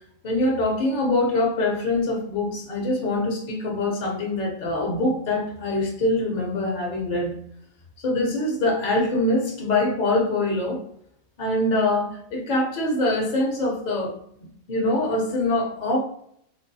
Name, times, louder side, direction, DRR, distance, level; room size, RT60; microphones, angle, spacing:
voice 1, 0.2-7.3 8.0-10.8 11.4-14.2 14.7-16.0, left 2 dB, 45° left, 0 dB, 0.7 m, -24 dB
3.3 x 2.7 x 2.6 m, 0.68 s
omnidirectional pair, 1.5 m